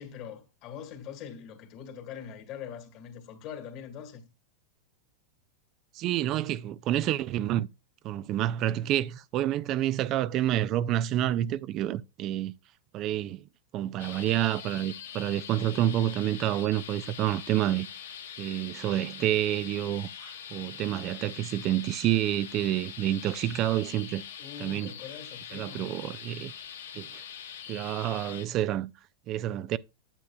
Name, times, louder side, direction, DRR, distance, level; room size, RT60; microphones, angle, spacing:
voice 1, 0.0-4.2 24.4-26.2, left 8 dB, 45° left, 1.8 m, -43 dB
voice 2, 5.9-7.7 8.0-12.5 12.9-13.4 13.7-17.9 18.4-24.2 24.6-24.9 25.5-26.5 26.9-27.2 27.7-28.9 29.3-29.8, right 13 dB, 40° right, 0.3 m, -28 dB
sound 1, 14.0-28.5, left 8 dB, 85° left, 1.1 m, -43 dB
8.9 x 8.0 x 2.3 m
hypercardioid pair, 120°, 0 cm